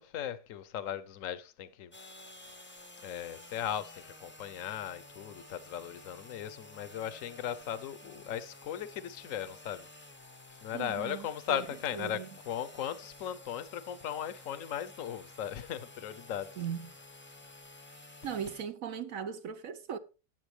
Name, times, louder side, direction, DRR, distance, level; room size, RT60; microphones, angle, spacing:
voice 1, 0.0-1.9 3.0-9.9 10.6-16.5, left 10 dB, 55° left, 1.0 m, -37 dB
sound 1, 1.9-18.6, left 2 dB, 10° left, 0.6 m, -52 dB
voice 2, 10.7-11.6 11.9-12.3 16.6-16.9 18.2-20.0, right 8 dB, 60° right, 1.0 m, -38 dB
15.5 x 9.2 x 3.3 m
omnidirectional pair, 1.9 m